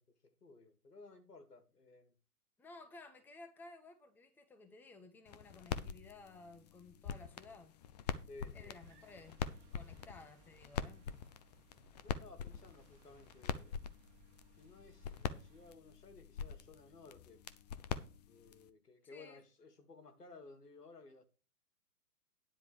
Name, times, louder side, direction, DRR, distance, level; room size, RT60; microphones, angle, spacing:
voice 1, 0.0-2.1 8.3-8.8 12.0-13.9 14.6-17.5 18.3-21.2, left 3 dB, 90° left, 2.0 m, -57 dB
voice 2, 2.6-7.8 8.0-8.1 8.5-9.3 9.7-11.1 19.1-19.4, left 3 dB, 5° left, 0.8 m, -56 dB
sound 1, 5.3-18.7, left 8 dB, 30° left, 0.5 m, -44 dB
sound 2, 8.8-15.7, right 4 dB, 25° right, 1.7 m, -67 dB
9.9 x 4.7 x 7.0 m
hypercardioid pair, 125°, 46 cm